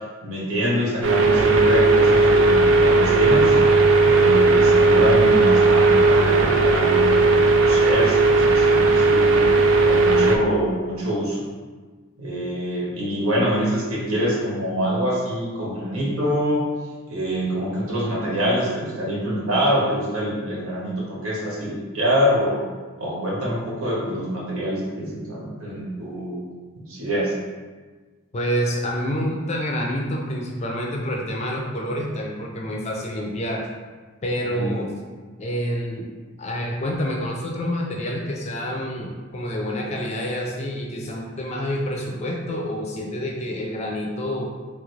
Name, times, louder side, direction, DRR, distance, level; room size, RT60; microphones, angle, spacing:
voice 1, 0.2-3.5 4.0-9.4 9.8-11.4 12.2-16.7 17.1-22.6 23.0-26.4 26.9-27.3 34.5-34.7, equal, 90° right, -5 dB, 1.1 m, -25 dB
sound 1, 1.0-10.4, right 3 dB, 60° right, 0.3 m, -16 dB
voice 2, 28.3-33.7 34.2-34.9 35.4-36.1 36.4-44.5, equal, 30° left, 0 dB, 0.4 m, -27 dB
3.2 x 2.5 x 3.1 m, 1.4 s
head